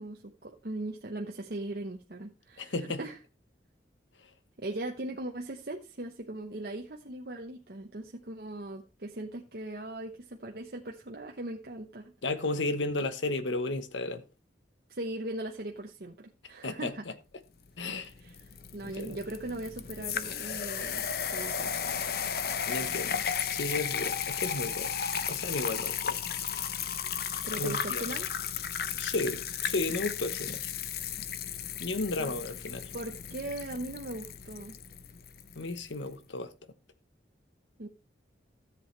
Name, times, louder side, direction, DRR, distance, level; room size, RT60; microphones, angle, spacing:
voice 1, 0.0-3.2 4.6-12.1 14.9-17.0 18.2-18.3 18.7-21.0 21.3-21.8 27.4-28.3 32.2-32.3 32.9-34.8 37.8-37.9, right 1 dB, 55° right, 0.9 m, -39 dB
voice 2, 2.6-3.0 12.2-14.2 16.6-16.9 17.8-18.1 18.8-19.2 22.7-23.2 23.5-24.9 25.3-26.2 27.5-28.0 29.0-30.7 31.8-32.9 35.5-36.5, left 2 dB, 85° left, 1.0 m, -33 dB
sound 1, 17.8-35.9, left 8 dB, 55° left, 0.7 m, -34 dB
13.5 x 7.8 x 3.2 m
head